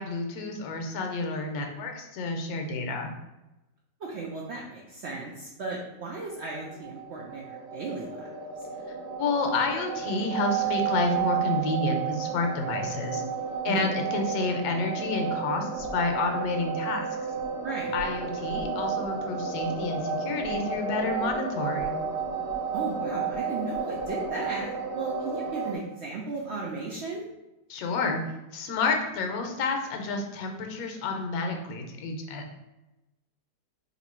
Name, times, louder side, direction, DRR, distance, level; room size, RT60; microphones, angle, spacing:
voice 1, 0.0-3.1 9.2-13.2 13.6-17.1 17.9-22.0 27.7-28.2 28.5-32.6, left 3 dB, 70° left, 4 dB, 1.0 m, -29 dB
voice 2, 4.0-8.3 13.7-13.9 17.6-18.0 22.7-27.2, right 3 dB, 90° right, -2 dB, 0.6 m, -35 dB
sound 1, 6.2-25.8, right 6 dB, 60° right, 1.1 m, -32 dB
3.0 x 2.7 x 4.3 m, 1.0 s
omnidirectional pair, 1.8 m